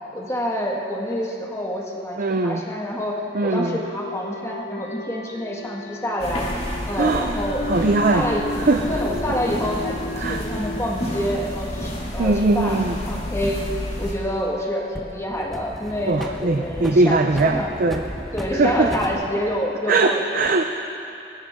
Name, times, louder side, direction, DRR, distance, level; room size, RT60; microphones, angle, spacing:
voice 1, 0.1-6.5 6.9-7.7 8.1-8.5 8.9-13.6 14.0-17.7 18.3-20.2, equal, 15° left, -1 dB, 1.8 m, -27 dB
voice 2, 2.2-2.6 3.3-3.8 7.0-7.3 7.7-8.3 8.6-8.8 10.2-10.4 12.2-13.0 16.1-18.0 18.6-18.9 19.9-20.6, right 3 dB, 50° right, 5 dB, 0.6 m, -20 dB
sound 1, 3.3-12.5, left 2 dB, 60° left, 0.6 m, -34 dB
sound 2, 6.2-14.1, equal, 35° left, 2.5 m, -30 dB
sound 3, 10.2-11.4 13.6-14.6 14.9-19.2, equal, ahead, 1.1 m, -35 dB
23.5 x 13.5 x 3.7 m, 2.8 s
head